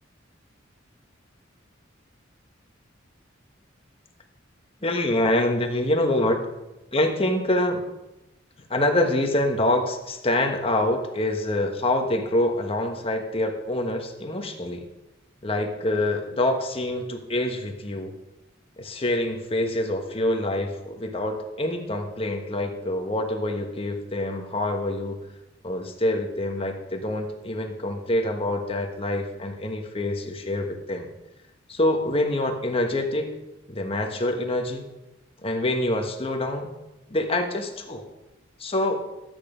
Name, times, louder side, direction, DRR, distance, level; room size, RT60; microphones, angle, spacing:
voice 1, 4.8-6.4 6.9-7.8 8.7-14.8 15.4-18.1 18.8-25.2 25.6-31.1 31.7-33.3 33.7-34.9 35.4-36.7 37.1-38.1 38.6-39.0, left 1 dB, 30° left, 4 dB, 1.3 m, -26 dB
13.0 x 9.0 x 5.1 m, 0.96 s
head